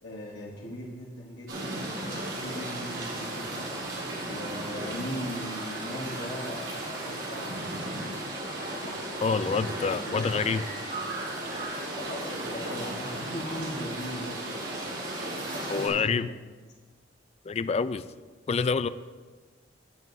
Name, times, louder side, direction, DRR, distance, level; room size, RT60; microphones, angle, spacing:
voice 1, 0.0-3.7 4.0-8.2 8.8-10.4 12.0-15.0 15.4-16.4, equal, 60° left, -5 dB, 1.3 m, -39 dB
sound 1, 1.5-15.9, right 1 dB, 75° right, 3.5 m, -35 dB
voice 2, 9.2-10.6 15.7-16.3 17.5-18.0 18.5-18.9, left 5 dB, 35° left, 14 dB, 0.3 m, -27 dB
17.0 x 7.5 x 2.7 m, 1.4 s
head